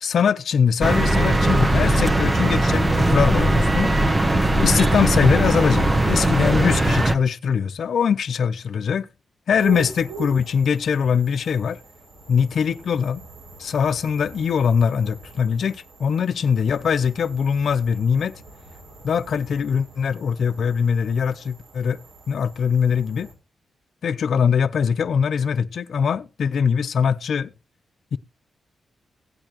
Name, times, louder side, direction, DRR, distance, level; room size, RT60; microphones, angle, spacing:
voice 1, 0.0-3.9 4.6-9.1 9.5-11.8 12.3-13.2 13.6-18.4 19.0-22.0 22.3-23.3 24.0-27.5 28.1-28.2, left 7 dB, 70° left, 0.6 m, -22 dB
sound 1, 0.8-7.2, right 1 dB, 25° right, 1.0 m, -19 dB
sound 2, 9.6-23.3, right 4 dB, 75° right, 3.9 m, -43 dB
17.0 x 8.8 x 3.0 m
cardioid pair, 70°, 0 cm